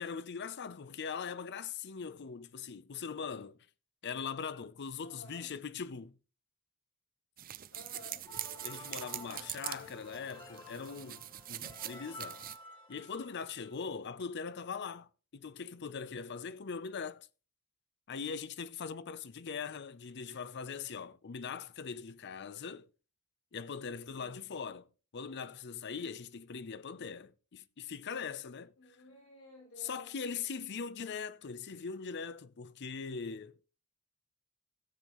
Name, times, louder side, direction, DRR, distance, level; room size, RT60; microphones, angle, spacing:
voice 1, 0.0-3.6 4.0-6.1 8.6-11.2 11.5-12.4 12.9-17.3 18.1-22.9 23.5-24.9 25.1-28.7 29.8-33.6, left 6 dB, 55° left, 0.6 m, -41 dB
voice 2, 5.0-5.6 7.7-8.3 9.1-10.0 23.9-24.5 28.8-30.2, left 1 dB, 75° left, 5.5 m, -55 dB
sound 1, 7.4-12.6, right 12 dB, 40° right, 0.6 m, -43 dB
sound 2, 8.2-13.7, equal, 20° left, 4.7 m, -52 dB
17.0 x 7.2 x 3.0 m
head